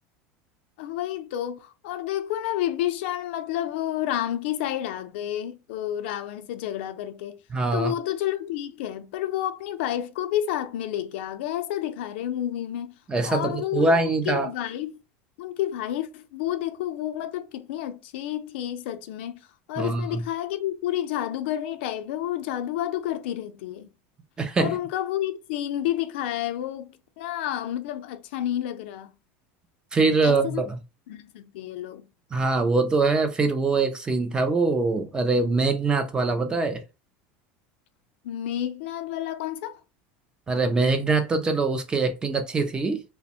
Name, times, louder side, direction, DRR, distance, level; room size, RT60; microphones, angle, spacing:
voice 1, 0.8-7.4 7.7-12.9 13.2-15.0 15.4-23.9 24.6-26.9 27.2-29.1 30.2-30.6 31.1-32.0 38.2-39.8, left 12 dB, 75° left, 0.4 m, -30 dB
voice 2, 7.5-7.9 13.1-14.5 19.8-20.2 24.4-24.8 29.9-30.8 32.3-36.8 40.5-43.0, right 3 dB, 15° right, 0.3 m, -23 dB
2.5 x 2.1 x 2.7 m
supercardioid pair, 160°, 6 cm